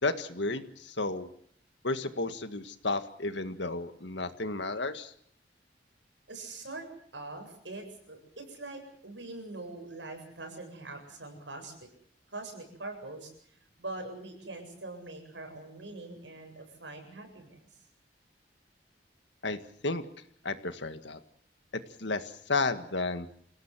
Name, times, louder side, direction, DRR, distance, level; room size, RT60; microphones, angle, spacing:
voice 1, 0.0-1.3 1.8-5.1 19.4-19.6 19.8-20.0 20.4-21.2 22.0-23.3, left 3 dB, 75° left, 9 dB, 1.9 m, -32 dB
voice 2, 6.3-6.9 7.1-11.7 12.3-13.3 13.8-17.6, right 2 dB, 80° right, 4 dB, 7.8 m, -43 dB
27.5 x 17.5 x 7.6 m, 0.63 s
head